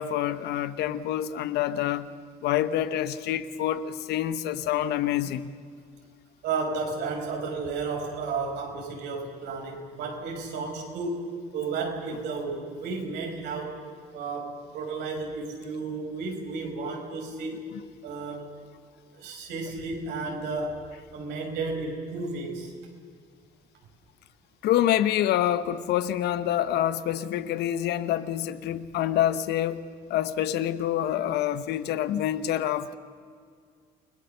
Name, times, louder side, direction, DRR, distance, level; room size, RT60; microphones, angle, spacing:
voice 1, 0.0-2.1 2.4-5.5 24.6-29.8 30.1-33.0, left 11 dB, 80° left, 1.1 m, -27 dB
voice 2, 6.4-13.8 14.1-17.6 18.0-18.6 19.1-20.8 21.1-22.7, right 4 dB, 85° right, 5.7 m, -33 dB
29.0 x 20.0 x 6.8 m
cardioid pair, 110°, 17 cm